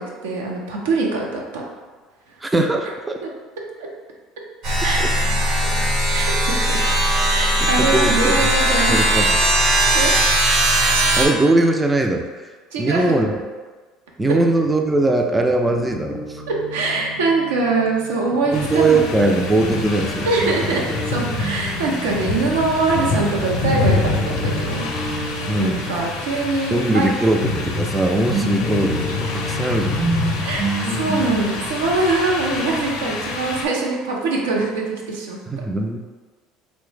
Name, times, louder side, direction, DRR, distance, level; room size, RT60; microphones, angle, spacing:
voice 1, 0.0-1.6 3.2-3.3 4.8-5.2 6.1-6.8 7.3-9.0 9.9-10.1 12.7-13.1 16.5-19.0 20.3-25.2 25.6-27.1 30.4-35.6, right 3 dB, 85° right, -1 dB, 0.5 m, -23 dB
voice 2, 2.4-3.2 5.0-5.1 7.8-8.5 8.9-9.4 11.1-12.3 12.8-13.4 14.2-16.4 18.5-20.3 25.5-25.8 26.7-30.0 35.5-36.0, right 2 dB, 15° right, 3 dB, 0.3 m, -20 dB
sound 1, 4.6-11.3, right 1 dB, 65° right, 1.0 m, -18 dB
Guitar, 15.7-23.4 23.7-34.1, right 1 dB, 45° right, 0.8 m, -31 dB
sound 2, 18.5-33.7, left 3 dB, 70° left, 0.5 m, -26 dB
3.0 x 2.1 x 3.2 m, 1.3 s
hypercardioid pair, 80°, 0 cm